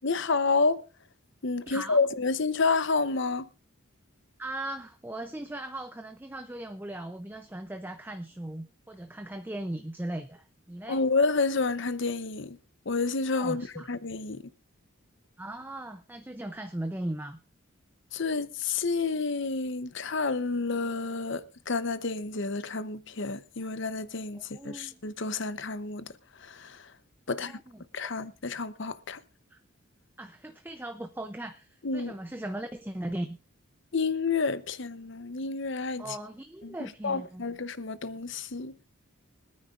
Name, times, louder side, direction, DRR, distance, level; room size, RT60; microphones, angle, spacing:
voice 1, 0.0-0.8 1.4-3.5 10.9-12.6 12.9-14.4 18.1-26.1 26.4-26.9 27.3-27.6 27.9-29.2 31.8-32.1 33.9-36.2 36.6-36.7 37.0-38.7, left 4 dB, 55° left, 0.8 m, -29 dB
voice 2, 1.7-2.0 4.4-11.0 13.4-13.9 15.4-17.4 24.3-25.0 27.3-27.8 29.5-29.6 30.2-33.4 36.0-37.5, right 1 dB, 10° right, 0.5 m, -38 dB
25.0 x 9.5 x 2.5 m
head